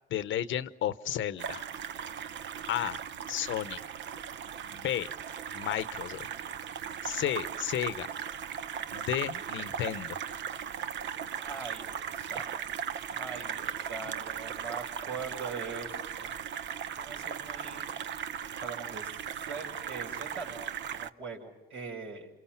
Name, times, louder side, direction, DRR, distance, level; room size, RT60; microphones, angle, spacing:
voice 1, 0.1-1.6 2.7-3.0 3.3-3.8 4.7-5.1 5.5-6.3 7.0-8.1 8.9-10.2, left 11 dB, 75° left, 14 dB, 1.0 m, -32 dB
sound 1, 1.4-21.1, right 8 dB, 65° right, 0.9 m, -38 dB
voice 2, 11.4-12.7 13.1-16.6 16.9-17.9 18.6-22.3, right 4 dB, 85° right, 0 dB, 6.0 m, -42 dB
28.0 x 27.5 x 5.9 m, 1.0 s
cardioid pair, 90°, 20 cm